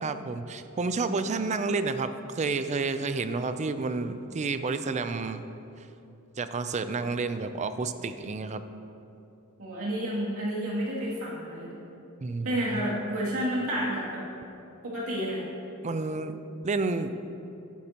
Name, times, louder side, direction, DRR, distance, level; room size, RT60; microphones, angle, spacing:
voice 1, 0.0-5.4 6.4-8.6 12.2-12.8 15.8-16.4 16.6-17.1, right 3 dB, 30° right, 10 dB, 0.4 m, -30 dB
voice 2, 9.6-11.8 12.4-14.2 14.8-15.5, equal, 70° right, -7 dB, 2.6 m, -30 dB
12.0 x 10.5 x 2.9 m, 2.9 s
head